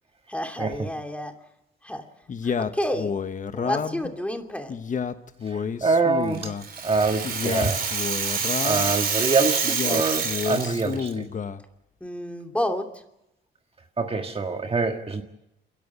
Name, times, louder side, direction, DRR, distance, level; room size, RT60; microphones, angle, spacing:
voice 1, 0.3-1.3 1.8-2.0 2.4-3.1 3.5-4.7 12.0-13.0, left 1 dB, 5° left, 4 dB, 2.6 m, -30 dB
Male speech man speaking, 2.3-4.1 4.7-6.7 7.2-8.9 9.6-11.6, left 6 dB, 40° left, 1.1 m, -30 dB
voice 2, 5.5-6.5 6.8-7.8 8.6-11.2 14.0-15.2, right 4 dB, 30° right, 4 dB, 1.6 m, -25 dB
Rattle (instrument), 6.3-11.1, right 5 dB, 50° right, 4.1 m, -27 dB
28.0 x 11.0 x 9.4 m, 0.86 s
cardioid pair, 90°, 20 cm